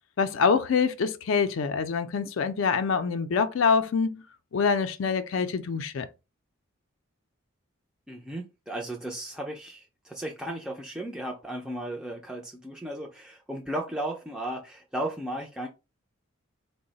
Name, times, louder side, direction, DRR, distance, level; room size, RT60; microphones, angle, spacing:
voice 1, 0.2-4.2 4.5-6.1, left 5 dB, 70° left, 0.4 m, -25 dB
voice 2, 8.1-15.7, right 1 dB, 5° right, 0.3 m, -35 dB
3.8 x 2.1 x 3.8 m
head